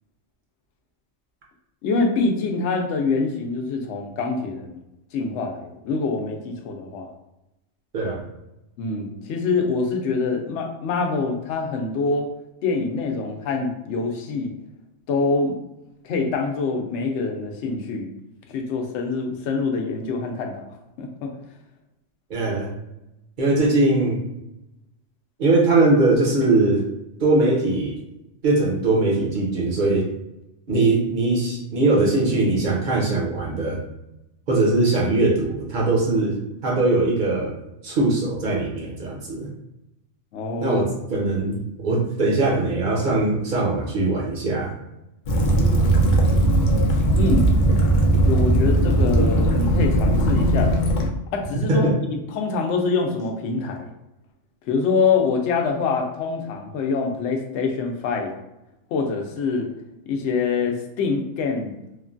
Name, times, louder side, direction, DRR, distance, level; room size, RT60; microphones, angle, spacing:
voice 1, 1.8-4.8 5.1-7.1 8.8-12.3 12.6-14.5 15.1-15.5 16.0-18.1 18.5-20.6 21.0-21.3 40.3-40.8 47.1-47.5 48.1-50.7 51.3-51.9 52.3-53.9 54.7-58.3 58.9-59.7 60.1-61.8, left 4 dB, 75° left, 2 dB, 0.9 m, -25 dB
voice 2, 22.3-22.7 23.4-24.2 25.4-26.8 27.2-28.0 28.4-30.1 30.7-33.8 34.5-37.5 37.8-39.5 40.6-44.7 51.7-52.0, right 2 dB, 45° right, -3 dB, 0.8 m, -21 dB
Waves surf / Splash splatter / Trickle dribble, 45.3-51.1, right 1 dB, 60° left, 0.5 m, -18 dB
3.1 x 2.2 x 2.5 m, 0.91 s
omnidirectional pair, 1.2 m